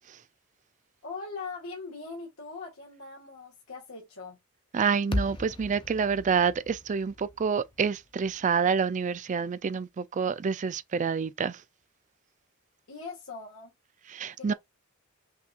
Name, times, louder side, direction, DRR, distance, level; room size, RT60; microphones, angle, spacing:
voice 1, 1.0-4.4 12.9-13.7 14.4-14.5, left 4 dB, 75° left, 1.5 m, -41 dB
voice 2, 4.7-11.6 14.1-14.5, right 6 dB, 35° right, 0.3 m, -28 dB
sound 1, 5.1-9.4, left 1 dB, 25° left, 0.6 m, -37 dB
5.9 x 2.7 x 2.4 m
head